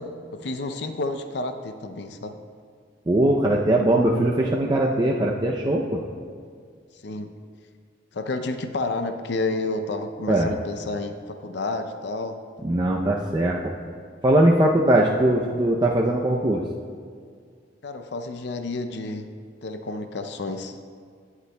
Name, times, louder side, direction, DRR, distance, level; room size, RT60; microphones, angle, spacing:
voice 1, 0.3-2.3 7.0-7.3 8.1-12.4 17.8-19.3 19.6-20.8, left 2 dB, 60° left, 8 dB, 0.5 m, -30 dB
voice 2, 3.1-6.0 10.3-10.5 12.6-13.8 14.2-16.6, right 1 dB, 25° right, -2 dB, 0.5 m, -20 dB
17.0 x 8.1 x 2.2 m, 2.1 s
head